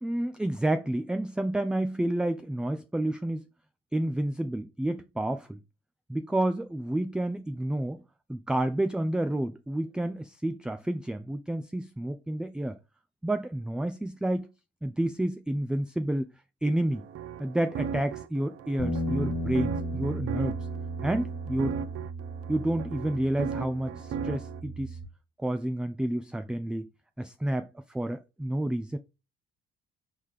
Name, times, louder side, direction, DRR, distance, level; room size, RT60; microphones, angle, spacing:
voice 1, 0.0-3.4 3.9-5.6 6.1-8.0 8.3-12.8 13.2-14.5 14.8-16.3 16.6-17.0 17.4-20.6 21.0-21.8 22.5-25.0 25.4-26.9 27.2-29.0, right 1 dB, 5° right, 0.3 m, -30 dB
sound 1, 16.9-24.6, right 7 dB, 50° right, 0.6 m, -37 dB
sound 2, 18.8-25.0, right 1 dB, 50° left, 1.7 m, -35 dB
4.2 x 3.6 x 3.2 m
hypercardioid pair, 55°, 30 cm